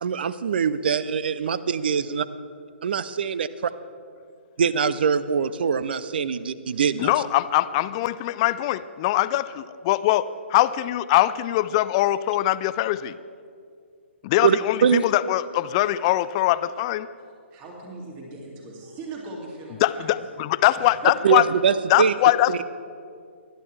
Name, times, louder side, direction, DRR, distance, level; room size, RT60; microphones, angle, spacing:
voice 1, 0.0-2.3 2.8-3.7 4.6-7.1 14.4-15.0 21.2-22.1 22.5-22.6, right 7 dB, 50° right, 16 dB, 0.5 m, -23 dB
voice 2, 7.0-13.1 14.2-14.8 15.0-17.1 19.8-21.4 21.9-22.6, left 15 dB, 30° left, 16 dB, 0.3 m, -22 dB
voice 3, 17.2-20.1 20.7-21.1, right 2 dB, 25° right, -2 dB, 2.6 m, -40 dB
20.5 x 11.5 x 3.4 m, 2.3 s
figure-of-eight pair, 125°, 7 cm